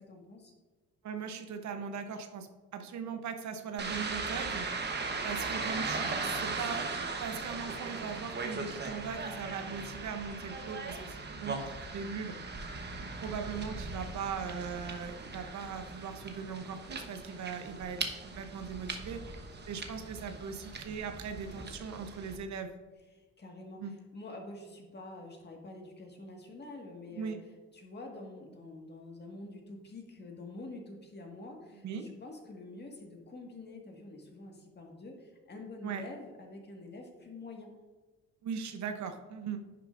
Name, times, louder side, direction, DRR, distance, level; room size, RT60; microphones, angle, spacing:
voice 1, 0.1-0.5 9.6-9.7 17.3-17.4 23.1-27.4 27.7-37.7, left 2 dB, 35° left, 1 dB, 1.7 m, -47 dB
voice 2, 1.0-4.7 5.2-12.4 13.2-19.4 19.7-22.8 23.7-23.9 27.1-27.4 31.7-32.1 35.8-36.0 38.4-39.6, right 6 dB, 70° right, 7 dB, 0.9 m, -39 dB
sound 1, 3.8-22.4, right 3 dB, 35° right, 1.1 m, -38 dB
10.5 x 6.8 x 2.5 m, 1.2 s
cardioid pair, 90°, 30 cm